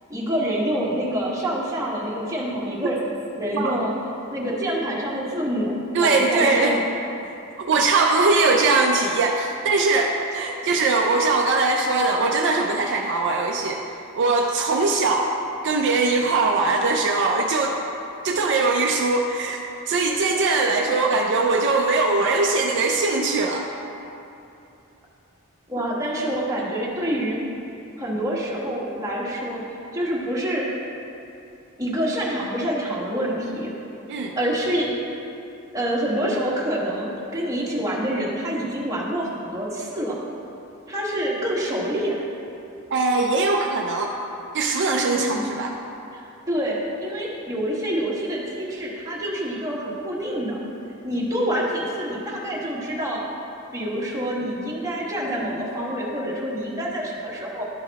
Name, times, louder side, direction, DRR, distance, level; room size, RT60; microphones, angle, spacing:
voice 1, 0.1-3.0 3.3-3.9 4.3-6.8 25.7-27.4 28.0-29.6 29.9-30.7 31.8-33.7 34.4-34.9 35.7-40.2 40.9-42.2 45.0-45.5 46.1-46.2 46.5-50.6 51.0-53.2 53.7-57.6, equal, 15° right, -5 dB, 1.2 m, -26 dB
voice 2, 5.9-6.8 7.6-13.8 14.2-15.3 15.6-17.8 18.2-23.7 34.1-34.3 42.9-44.1 44.5-45.7, right 3 dB, 55° right, 1 dB, 0.5 m, -21 dB
11.5 x 4.0 x 4.1 m, 2.8 s
head